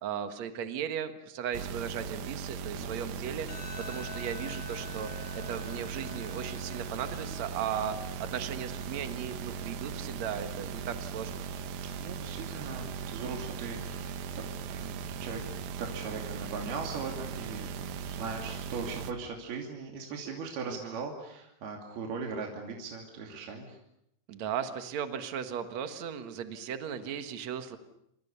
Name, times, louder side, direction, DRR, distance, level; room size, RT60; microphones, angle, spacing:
voice 1, 0.0-11.4 20.7-21.0 24.3-27.8, right 8 dB, 90° right, 8 dB, 1.5 m, -37 dB
sound 1, 1.5-19.1, right 7 dB, 75° right, 2.2 m, -38 dB
voice 2, 2.8-3.1 12.0-15.4 15.7-23.8, right 4 dB, 55° right, 1 dB, 4.3 m, -39 dB
sound 2, 3.5-16.5, left 6 dB, 75° left, 7.6 m, -51 dB
28.0 x 27.5 x 6.9 m, 0.79 s
omnidirectional pair, 5.8 m